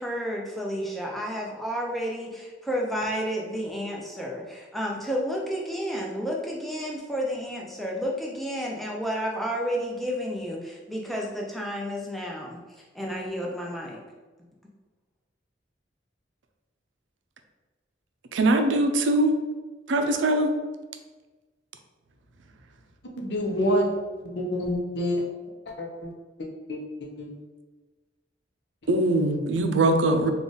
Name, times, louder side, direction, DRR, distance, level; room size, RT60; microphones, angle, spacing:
voice 1, 0.0-12.6 12.9-14.0, equal, ahead, -2 dB, 0.5 m, -31 dB
voice 2, 18.3-19.4 19.9-20.5 28.9-30.3, right 2 dB, 85° right, 5 dB, 0.4 m, -22 dB
voice 3, 23.0-25.2 25.7-26.1 26.4-27.4, equal, 65° left, 0 dB, 0.7 m, -28 dB
3.6 x 2.4 x 3.9 m, 1.3 s
head